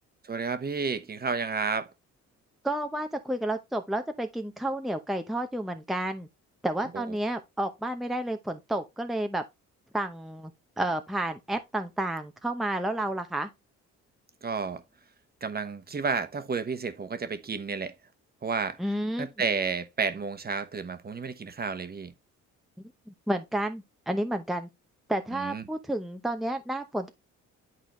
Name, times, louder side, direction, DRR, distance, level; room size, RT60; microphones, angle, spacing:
voice 1, 0.2-1.9 6.9-7.0 14.4-14.8 15.4-17.9 18.4-18.8 19.2-22.1 25.3-25.6, right 5 dB, 30° right, 1.1 m, -31 dB
voice 2, 2.6-6.3 6.6-9.4 9.9-10.5 10.8-13.5 18.8-19.3 23.1-24.7 25.1-27.1, right 1 dB, ahead, 0.8 m, -31 dB
10.5 x 4.1 x 3.1 m
cardioid pair, 90°, 30 cm